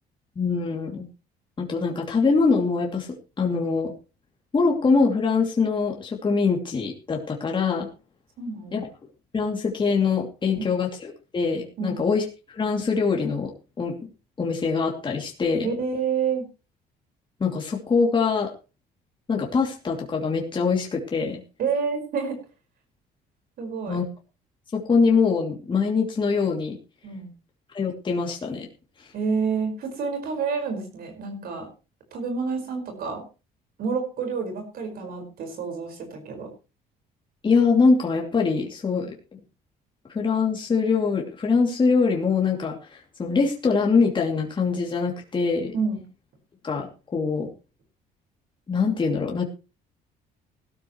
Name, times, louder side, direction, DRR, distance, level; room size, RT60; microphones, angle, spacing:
voice 1, 0.4-1.0 1.6-3.1 3.4-3.9 4.5-7.9 8.7-8.9 9.3-10.9 11.3-13.5 13.8-13.9 14.4-15.7 17.4-18.5 19.3-21.4 23.9-24.0 24.7-26.8 27.7-28.7 37.4-39.1 40.1-45.7 46.6-47.5 48.7-49.4, left 4 dB, 30° left, 0 dB, 2.7 m, -23 dB
voice 2, 8.4-8.8 10.5-10.7 11.8-12.0 15.6-16.5 21.6-22.4 23.6-24.0 27.0-27.3 29.1-31.7 32.1-33.2 33.8-36.5 45.7-46.0, right 5 dB, 60° right, 4 dB, 5.0 m, -28 dB
17.5 x 12.5 x 3.1 m, 0.32 s
cardioid pair, 110°, 17 cm